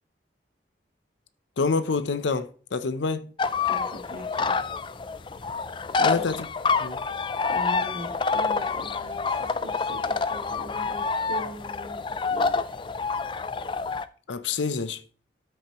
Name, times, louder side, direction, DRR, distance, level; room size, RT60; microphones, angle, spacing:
voice 1, 1.6-3.2 6.0-6.5 6.8-7.0 14.3-15.0, left 4 dB, 90° left, 0.6 m, -27 dB
sound 1, 3.4-14.1, left 4 dB, 25° left, 0.3 m, -27 dB
voice 2, 3.6-4.6 6.0-6.3 7.5-12.8, equal, 50° right, 3.3 m, -40 dB
12.5 x 6.4 x 3.0 m
head